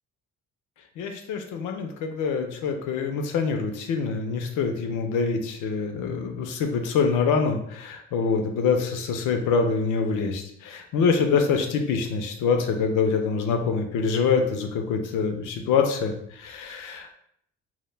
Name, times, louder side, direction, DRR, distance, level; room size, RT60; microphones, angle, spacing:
voice 1, 1.0-17.1, left 5 dB, 85° left, 5 dB, 0.5 m, -25 dB
2.1 x 2.1 x 3.1 m, 0.70 s
cardioid pair, 90°, 30 cm